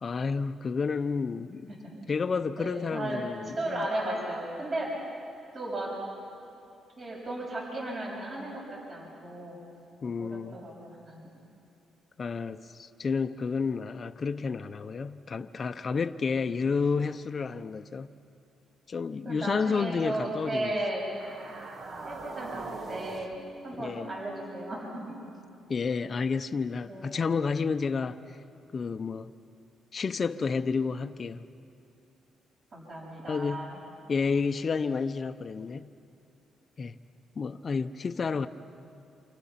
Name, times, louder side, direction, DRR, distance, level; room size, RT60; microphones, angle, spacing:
voice 1, 0.0-1.6 2.1-3.9 10.0-10.6 12.2-18.1 18.9-20.7 23.8-24.1 25.7-28.4 28.7-29.3 29.9-31.4 33.3-33.7 34.1-35.9 36.8-37.0 37.4-38.5, left 5 dB, 40° left, 0.8 m, -30 dB
voice 2, 1.7-2.0 2.6-3.2 3.6-4.9 5.5-5.9 7.0-9.6 10.2-11.3 19.2-21.0 22.0-23.3 23.6-25.0 26.8-27.1 32.7-33.8, right 1 dB, 40° right, 7.4 m, -35 dB
sound 1, 21.0-25.4, right 3 dB, 55° right, 2.0 m, -43 dB
27.5 x 27.5 x 5.9 m
cardioid pair, 90°, 0 cm